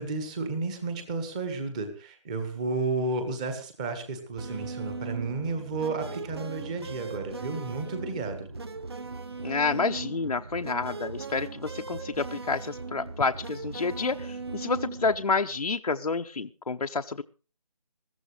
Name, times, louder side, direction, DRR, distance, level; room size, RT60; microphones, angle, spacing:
voice 1, 0.0-8.5, right 3 dB, 10° right, 9 dB, 1.4 m, -32 dB
sound 1, 4.4-15.1, right 3 dB, 40° right, 1.5 m, -38 dB
voice 2, 9.4-17.2, left 4 dB, 65° left, 5 dB, 0.9 m, -29 dB
21.5 x 15.0 x 3.3 m, 0.35 s
figure-of-eight pair, 170°, 21 cm